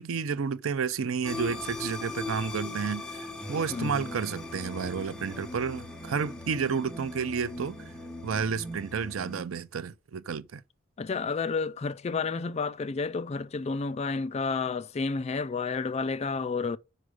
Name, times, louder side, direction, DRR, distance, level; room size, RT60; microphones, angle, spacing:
voice 1, 0.0-7.7 8.2-10.6, right 6 dB, 80° right, 0.5 m, -31 dB
sound 1, 1.2-9.4, left 2 dB, 5° left, 0.9 m, -39 dB
voice 2, 3.7-4.2 11.0-16.8, left 4 dB, 30° left, 0.3 m, -31 dB
5.1 x 4.9 x 6.3 m
head